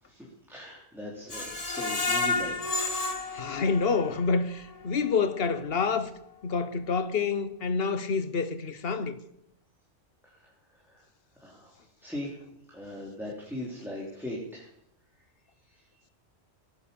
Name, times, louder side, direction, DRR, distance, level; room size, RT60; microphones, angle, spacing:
voice 1, 0.1-2.6 10.3-10.4 10.9-11.0 11.4-11.7 12.0-12.3 12.7-14.7, left 1 dB, ahead, 3.3 m, -39 dB
Screech, 1.3-4.3 4.7-4.8 5.2-5.3, left 3 dB, 30° left, 1.6 m, -31 dB
voice 2, 3.3-6.1 6.4-9.2, left 5 dB, 55° left, 1.2 m, -28 dB
18.0 x 9.7 x 7.0 m
omnidirectional pair, 1.2 m